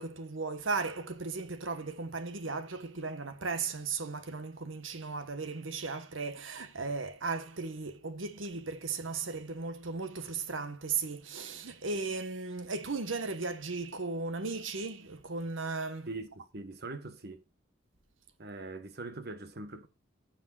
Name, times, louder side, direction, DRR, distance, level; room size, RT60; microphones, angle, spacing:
voice 1, 0.0-16.1, right 4 dB, 80° right, 1.4 m, -36 dB
voice 2, 16.1-17.4 18.4-19.9, right 2 dB, 55° right, 1.4 m, -42 dB
16.0 x 7.3 x 2.5 m
head